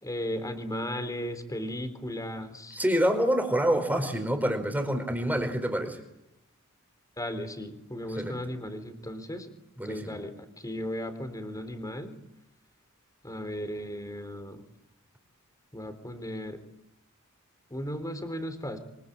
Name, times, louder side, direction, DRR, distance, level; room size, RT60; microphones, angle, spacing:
voice 1, 0.0-2.8 7.2-9.5 9.8-12.2 13.2-14.6 15.7-16.6 17.7-18.8, equal, 15° left, 9 dB, 3.9 m, -36 dB
voice 2, 2.7-6.0 8.2-8.4 9.8-10.2, equal, 10° right, 6 dB, 4.8 m, -27 dB
25.5 x 25.5 x 8.8 m, 0.84 s
head